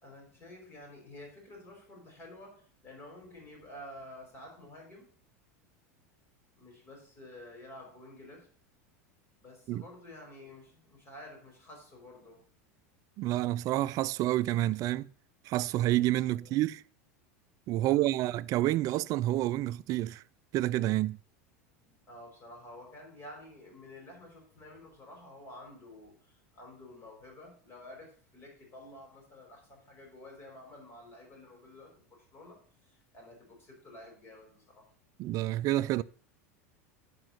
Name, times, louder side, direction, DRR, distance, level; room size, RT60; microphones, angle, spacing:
voice 1, 0.0-5.2 6.6-8.5 9.4-12.4 16.2-16.6 17.8-18.1 21.8-34.9, left 1 dB, 30° left, 5.0 m, -50 dB
voice 2, 13.2-15.1 15.5-16.8 17.7-20.2 20.5-21.2 35.2-36.0, right 15 dB, 50° right, 0.4 m, -29 dB
9.2 x 5.1 x 6.3 m
hypercardioid pair, 105°, 8 cm